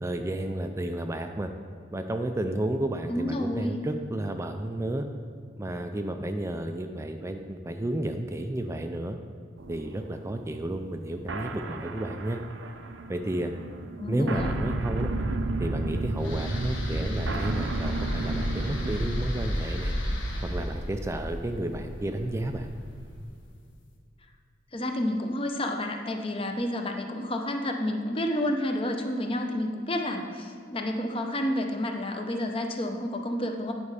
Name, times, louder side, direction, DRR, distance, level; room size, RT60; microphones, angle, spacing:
voice 1, 0.0-1.5 1.9-5.1 5.6-9.2 9.7-12.4 13.1-13.5 14.1-15.1 15.6-19.9 20.4-22.7, right 1 dB, 15° right, 6 dB, 0.3 m, -32 dB
voice 2, 3.1-3.8 14.0-14.5 24.7-33.7, left 1 dB, 30° left, 4 dB, 0.7 m, -30 dB
sound 1, 9.6-19.3, right 2 dB, 90° right, 0.6 m, -33 dB
sound 2, 16.2-23.4, equal, 80° left, 1.2 m, -33 dB
9.6 x 5.3 x 4.8 m, 2.2 s
head